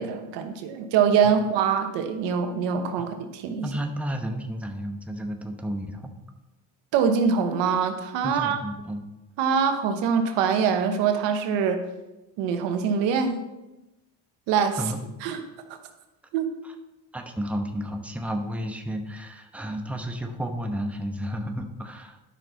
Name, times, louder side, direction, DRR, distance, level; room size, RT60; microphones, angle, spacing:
voice 1, 0.0-3.7 6.9-8.6 9.4-11.8 12.4-13.4 14.5-14.8 15.2-15.4 16.3-16.5, right 6 dB, 90° right, 6 dB, 1.1 m, -24 dB
voice 2, 3.6-6.1 8.2-9.0 14.8-15.0 17.1-22.2, equal, 5° right, 3 dB, 1.0 m, -32 dB
10.5 x 5.8 x 4.1 m, 1.0 s
cardioid pair, 95°, 42 cm